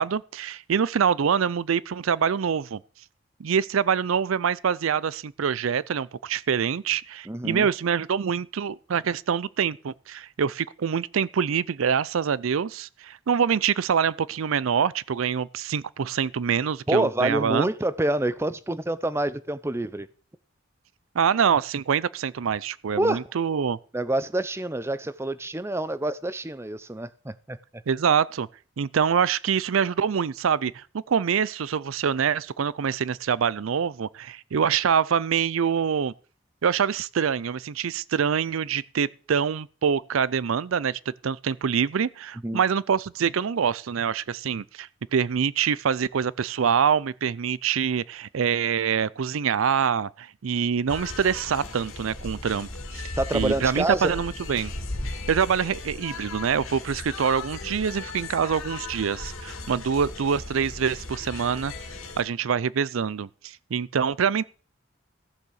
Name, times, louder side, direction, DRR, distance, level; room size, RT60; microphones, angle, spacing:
voice 1, 0.0-2.8 3.4-17.7 21.1-23.8 27.9-28.5 28.8-36.1 36.6-54.7 55.3-61.7 62.2-64.4, right 7 dB, 80° right, 0.5 m, -25 dB
voice 2, 7.3-7.7 16.9-20.1 23.0-23.2 23.9-27.6 42.4-42.6 53.2-54.2, right 1 dB, 10° right, 0.5 m, -27 dB
sound 1, 50.9-62.2, left 2 dB, 85° left, 2.3 m, -37 dB
14.5 x 6.8 x 6.4 m
head